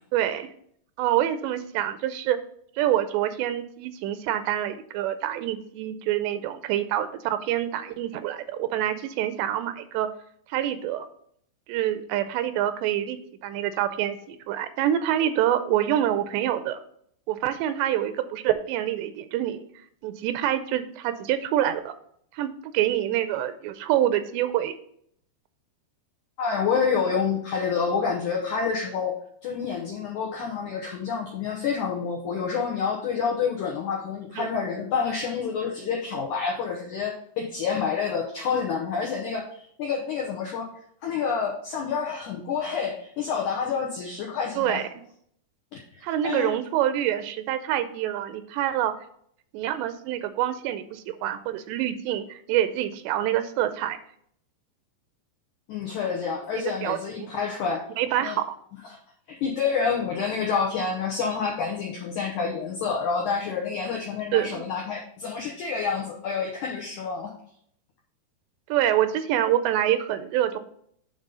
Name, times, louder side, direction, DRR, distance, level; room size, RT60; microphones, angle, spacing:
voice 1, 0.1-0.5 1.0-2.4 2.8-10.1 10.5-11.1 11.7-16.8 17.3-19.6 20.0-21.9 22.3-24.8 34.4-34.5 44.6-44.9 46.0-48.9 49.5-54.0 56.8-57.3 58.0-58.6 64.3-64.6 68.7-70.6, right 12 dB, 85° right, 11 dB, 2.7 m, -26 dB
voice 2, 26.4-29.1 29.4-40.7 41.0-44.8 45.7-46.5 55.7-57.8 58.2-58.4 58.9-59.0 59.3-67.3, left 6 dB, 85° left, -1 dB, 1.7 m, -28 dB
8.9 x 3.9 x 5.5 m, 0.66 s
omnidirectional pair, 4.9 m